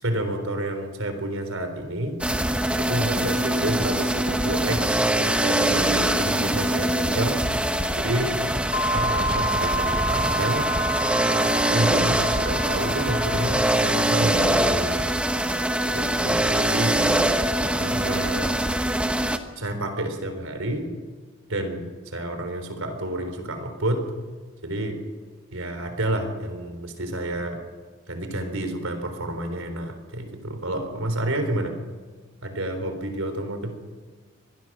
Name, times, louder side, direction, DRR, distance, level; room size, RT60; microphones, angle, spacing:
voice 1, 0.0-2.2 2.8-7.5 8.0-8.4 8.9-10.7 11.7-15.0 15.9-17.1 17.8-18.6 19.6-20.9 21.5-24.1 24.6-25.0 25.5-27.6 28.1-31.8 32.4-33.7, right 1 dB, 85° right, 7 dB, 3.9 m, -29 dB
sound 1, 2.2-19.4, right 1 dB, 5° right, 1.1 m, -23 dB
sound 2, 8.7-15.2, right 1 dB, 75° left, 3.2 m, -30 dB
24.5 x 20.0 x 6.2 m, 1.5 s
head